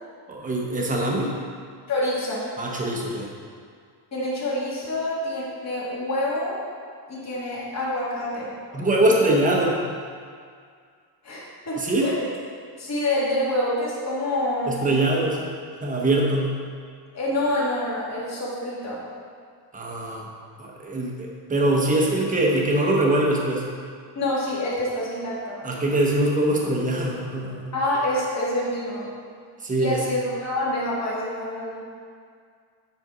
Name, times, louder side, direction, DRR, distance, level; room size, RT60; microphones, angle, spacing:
voice 1, 0.3-1.3 2.6-3.3 8.7-9.8 11.8-12.1 14.7-15.5 15.8-16.6 19.7-20.3 20.6-23.6 25.6-27.7 29.6-30.0, right 1 dB, 20° right, -2 dB, 1.0 m, -23 dB
voice 2, 1.9-2.5 4.1-6.6 7.1-8.5 11.2-12.3 12.8-14.8 17.1-19.0 24.2-25.6 27.7-29.1 29.8-31.9, left 1 dB, 35° left, -6 dB, 2.0 m, -27 dB
9.6 x 4.4 x 4.8 m, 2.1 s
cardioid pair, 165°, 45 cm